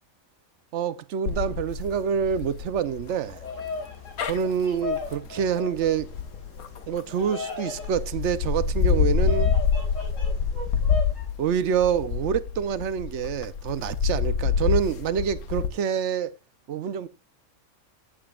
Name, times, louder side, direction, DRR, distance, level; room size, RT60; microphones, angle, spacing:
voice 1, 0.7-3.4 4.2-6.1 6.9-9.5 11.4-16.4 16.7-17.1, right 7 dB, 60° right, 1.0 m, -26 dB
sound 1, 1.3-7.2 7.7-15.7, left 6 dB, 80° left, 1.5 m, -27 dB
Bird vocalization bird call bird song, 3.2-11.3, left 4 dB, 60° left, 6.3 m, -37 dB
15.5 x 7.4 x 2.4 m
omnidirectional pair, 1.5 m